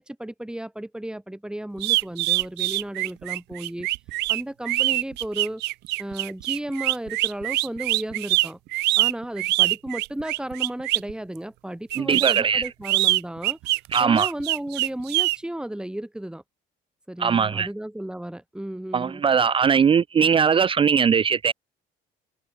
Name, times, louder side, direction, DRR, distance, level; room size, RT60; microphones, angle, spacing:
voice 1, 0.0-3.9 4.3-5.6 6.0-8.6 9.0-13.6 14.0-16.4 17.1-19.2, right 1 dB, 5° right, 4.4 m, -34 dB
sound 1, 1.8-11.1 11.9-15.4, right 20 dB, 85° right, 1.2 m, -24 dB
voice 2, 12.0-12.6 13.9-14.3 17.2-17.7 18.9-21.5, right 6 dB, 30° right, 0.6 m, -20 dB
cardioid pair, 110°, 17 cm